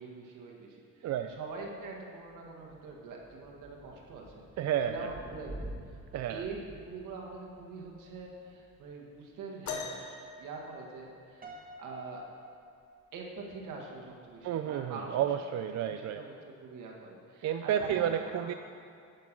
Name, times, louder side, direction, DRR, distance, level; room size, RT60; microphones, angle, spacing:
voice 1, 0.0-6.0 6.3-12.2 13.1-15.3 15.8-16.3 16.6-18.5, right 4 dB, 85° right, -1 dB, 1.7 m, -44 dB
voice 2, 1.0-1.4 4.6-5.1 6.1-6.4 14.4-16.2 17.4-18.5, right 10 dB, 65° right, 8 dB, 0.4 m, -31 dB
Thunder / Rain, 1.1-9.3, right 1 dB, 10° right, 1.4 m, -50 dB
sound 1, 9.7-11.6 13.2-13.3 14.1-14.3 15.3-15.4, left 5 dB, 75° left, 1.1 m, -42 dB
Piano, 11.4-13.7, right 1 dB, 30° right, 1.3 m, -51 dB
10.5 x 5.7 x 6.1 m, 2.3 s
cardioid pair, 90°, 30 cm